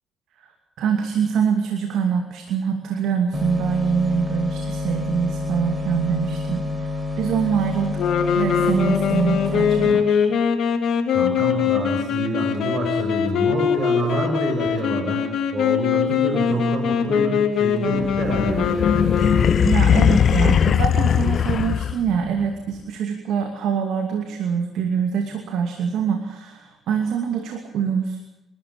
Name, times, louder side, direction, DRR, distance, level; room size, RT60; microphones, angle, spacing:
voice 1, 0.8-8.0 8.3-10.2 19.6-28.2, right 7 dB, 85° right, 4 dB, 2.6 m, -24 dB
sound 1, 3.3-9.9, left 3 dB, 10° right, 5.0 m, -28 dB
sound 2, 8.0-19.8, left 7 dB, 75° left, 3.0 m, -22 dB
voice 2, 11.1-18.9, right 2 dB, 45° right, -1 dB, 7.3 m, -27 dB
sound 3, 18.0-22.3, left 8 dB, 55° left, 0.8 m, -19 dB
28.0 x 13.0 x 8.7 m, 0.92 s
cardioid pair, 90°, 0 cm